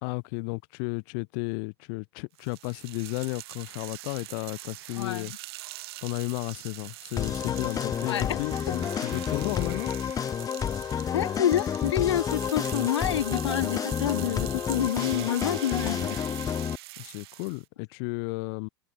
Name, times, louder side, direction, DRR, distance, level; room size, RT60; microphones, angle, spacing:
voice 1, 0.0-5.3 6.0-9.9 17.0-18.7, left 37 dB, 55° left, 2.4 m, -33 dB
sound 1, 2.4-17.7, right 19 dB, 65° right, 8.0 m, -43 dB
voice 2, 5.0-5.3 8.1-8.4 11.1-16.2, left 10 dB, 80° left, 1.4 m, -28 dB
sound 2, 7.2-16.8, left 8 dB, 25° left, 1.2 m, -30 dB
hypercardioid pair, 100°, 14 cm